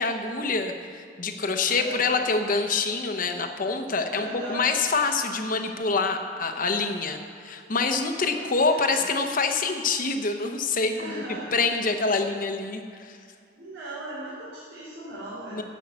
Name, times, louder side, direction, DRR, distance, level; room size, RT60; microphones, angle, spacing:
voice 1, 0.0-11.2 11.5-13.2 15.5-15.6, left 4 dB, 50° left, 6 dB, 0.9 m, -26 dB
voice 2, 1.7-2.1 4.1-4.7 7.1-7.7 8.1-9.0 10.9-11.6 13.5-15.6, right 1 dB, 85° right, -9 dB, 3.5 m, -38 dB
13.0 x 5.6 x 8.1 m, 2.3 s
head